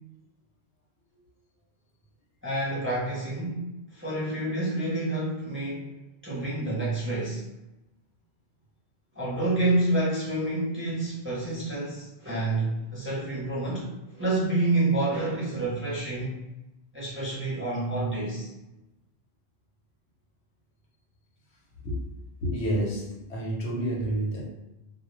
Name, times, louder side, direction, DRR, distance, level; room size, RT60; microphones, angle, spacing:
voice 1, 2.4-5.9 6.2-7.5 9.1-13.9 14.2-16.4 16.9-18.5, right 2 dB, 15° right, -7 dB, 0.5 m, -28 dB
voice 2, 22.4-23.0 23.3-24.4, right 1 dB, 90° left, -3 dB, 1.0 m, -28 dB
2.2 x 2.0 x 3.0 m, 0.97 s
omnidirectional pair, 1.1 m